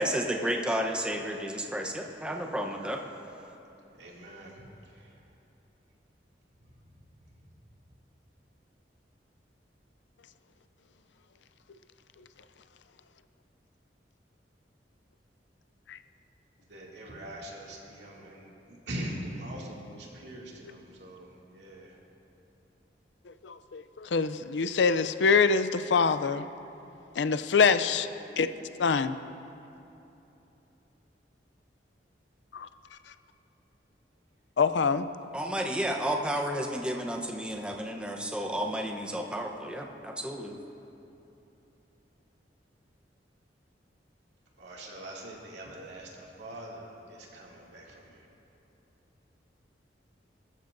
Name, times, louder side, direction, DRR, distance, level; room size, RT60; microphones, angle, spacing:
voice 1, 0.0-3.0 35.3-40.5, equal, 5° right, 1 dB, 0.9 m, -32 dB
voice 2, 4.0-5.2 6.6-6.7 7.2-7.6 16.7-22.0 44.6-48.3, right 1 dB, 80° right, -3 dB, 2.5 m, -43 dB
voice 3, 23.3-26.4 27.2-28.1 28.4-28.5 28.8-29.2 32.5-32.7 34.6-35.0, left 5 dB, 85° left, 12 dB, 0.5 m, -25 dB
21.5 x 14.0 x 2.6 m, 2.9 s
head